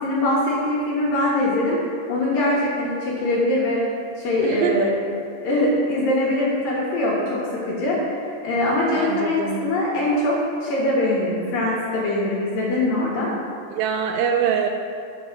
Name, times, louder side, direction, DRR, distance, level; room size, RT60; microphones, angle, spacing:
voice 1, 0.0-1.8 2.1-3.8 4.2-5.0 5.4-10.4 10.6-13.3, left 1 dB, 65° left, -5 dB, 2.5 m, -22 dB
voice 2, 4.4-4.9 8.9-9.6 13.7-14.7, right 8 dB, 85° right, 5 dB, 2.5 m, -24 dB
8.1 x 5.4 x 5.9 m, 2.3 s
omnidirectional pair, 5.1 m